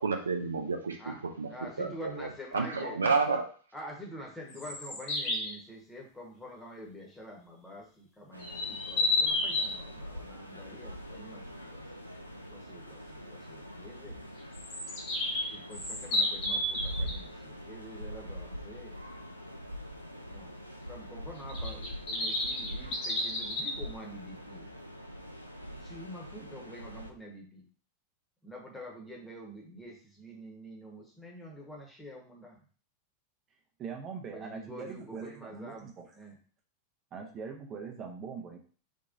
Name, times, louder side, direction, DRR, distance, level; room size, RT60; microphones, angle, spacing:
voice 1, 0.0-1.5 1.8-2.3 2.5-3.5, right 4 dB, 75° right, 4 dB, 0.4 m, -30 dB
voice 2, 1.5-3.0 3.7-12.1 12.5-14.2 15.5-19.0 20.3-20.5 20.9-24.8 25.7-27.7 28.4-32.6 34.3-36.4, equal, 10° left, -1 dB, 1.1 m, -47 dB
sound 1, 4.5-5.6 8.4-9.7 14.5-17.2 21.5-23.7, left 2 dB, 40° left, 1.2 m, -31 dB
sound 2, 8.3-27.1, equal, 90° left, 0.4 m, -43 dB
voice 3, 33.8-36.1 37.1-38.6, right 5 dB, 30° right, 2 dB, 0.7 m, -42 dB
3.5 x 2.9 x 2.6 m, 0.41 s
figure-of-eight pair, 90°, 0 cm